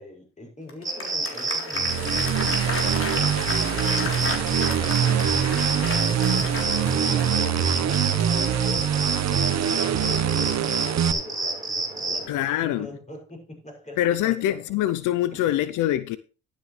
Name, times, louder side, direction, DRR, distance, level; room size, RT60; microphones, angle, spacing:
voice 1, 0.0-14.6 15.3-15.4, left 1 dB, 25° left, 6.2 m, -42 dB
Applause, 0.7-8.8, left 3 dB, 45° left, 3.4 m, -33 dB
sound 1, 0.8-12.3, right 3 dB, 15° right, 4.1 m, -29 dB
sound 2, 1.7-11.1, right 9 dB, 60° right, 1.1 m, -24 dB
voice 2, 12.3-12.9 14.0-16.2, left 13 dB, 90° left, 0.7 m, -24 dB
11.5 x 10.5 x 3.2 m
cardioid pair, 90°, 30 cm